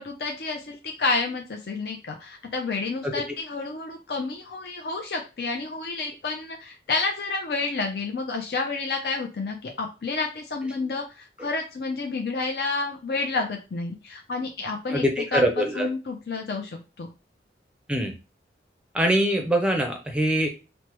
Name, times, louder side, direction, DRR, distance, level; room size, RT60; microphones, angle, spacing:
voice 1, 0.0-15.0 15.3-17.1, left 3 dB, 60° left, 2 dB, 0.5 m, -30 dB
voice 2, 14.9-15.9 17.9-18.1 18.9-20.5, equal, 5° right, 3 dB, 0.5 m, -23 dB
3.3 x 2.1 x 2.9 m, 0.29 s
head